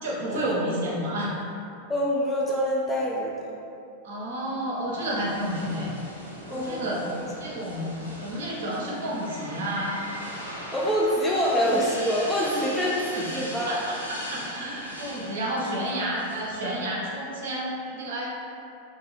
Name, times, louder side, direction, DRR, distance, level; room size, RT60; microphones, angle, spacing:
voice 1, 0.0-1.4 4.0-5.9 6.5-7.0 7.4-7.9 8.2-10.0 11.4-11.6 13.1-13.2 13.7-18.3, right 1 dB, 60° right, -4 dB, 0.6 m, -30 dB
voice 2, 1.9-3.5 6.5-6.9 10.7-13.7, equal, 10° left, -5 dB, 0.3 m, -25 dB
sound 1, 5.0-17.0, equal, 90° left, 0.4 m, -39 dB
2.5 x 2.1 x 3.2 m, 2.6 s
figure-of-eight pair, 90°, 0 cm